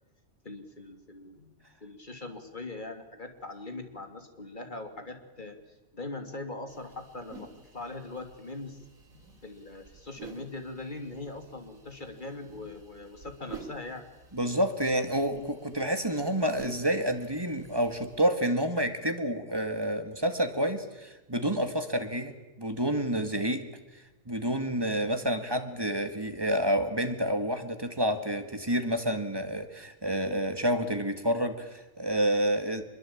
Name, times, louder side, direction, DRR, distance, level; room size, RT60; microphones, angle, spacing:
voice 1, 0.4-5.6 5.9-7.5 7.7-8.8 9.4-14.0, left 2 dB, 35° left, 6 dB, 3.0 m, -41 dB
sound 1, 6.7-18.2, right 4 dB, 90° right, 3.5 m, -51 dB
voice 2, 14.3-22.3 22.6-23.6 23.9-32.8, equal, 15° right, 7 dB, 2.0 m, -29 dB
25.0 x 22.5 x 8.7 m, 1.1 s
omnidirectional pair, 1.4 m